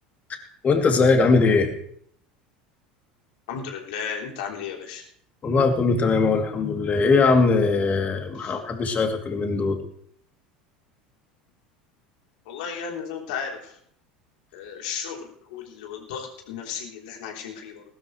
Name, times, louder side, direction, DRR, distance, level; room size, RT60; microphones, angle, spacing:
voice 1, 0.6-1.7 5.4-9.8, left 4 dB, 35° left, 3 dB, 3.0 m, -20 dB
voice 2, 3.5-5.0 8.4-8.6 12.5-13.7 14.5-17.8, left 7 dB, 70° left, 0 dB, 3.6 m, -34 dB
20.0 x 12.5 x 3.3 m, 0.66 s
hypercardioid pair, 75°, 5 cm